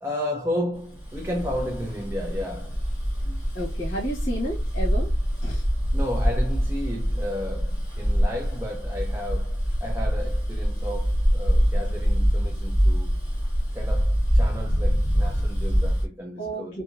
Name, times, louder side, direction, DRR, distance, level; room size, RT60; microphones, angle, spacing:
voice 1, 0.0-2.8 5.9-13.2 13.7-16.8, left 1 dB, 10° right, 0.4 m, -33 dB
Bus, 0.9-16.1, equal, 20° left, 1.4 m, -24 dB
voice 2, 3.5-5.1 5.4-5.6 16.4-16.8, right 1 dB, 65° left, 1.1 m, -31 dB
2.8 x 2.6 x 2.4 m
head